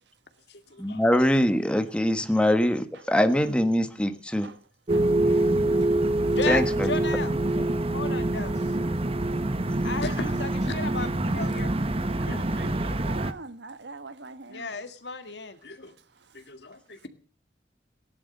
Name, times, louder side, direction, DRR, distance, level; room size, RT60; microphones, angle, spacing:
voice 1, 0.8-4.5 6.5-6.9 7.2-7.7, equal, 5° left, 1.3 m, -23 dB
sound 1, 4.9-13.3, right 1 dB, 35° right, 1.1 m, -25 dB
voice 2, 5.1-5.7 6.4-7.3 7.9-8.5 9.8-11.7 14.5-15.6, left 4 dB, 85° left, 2.1 m, -34 dB
voice 3, 12.1-14.7, right 3 dB, 80° right, 1.3 m, -43 dB
voice 4, 16.3-17.1, left 2 dB, 70° left, 2.3 m, -39 dB
17.0 x 11.0 x 6.6 m
head